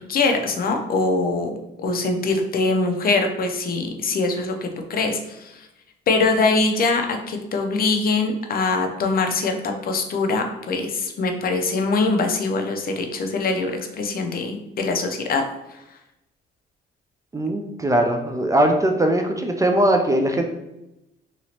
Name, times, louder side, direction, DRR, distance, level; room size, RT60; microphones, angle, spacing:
voice 1, 0.1-1.5 1.8-5.7 6.1-15.8, left 3 dB, 50° left, 4 dB, 0.6 m, -23 dB
voice 2, 17.3-20.4, right 1 dB, 15° right, 3 dB, 0.3 m, -20 dB
2.9 x 2.8 x 2.8 m, 0.92 s
cardioid pair, 90°, 20 cm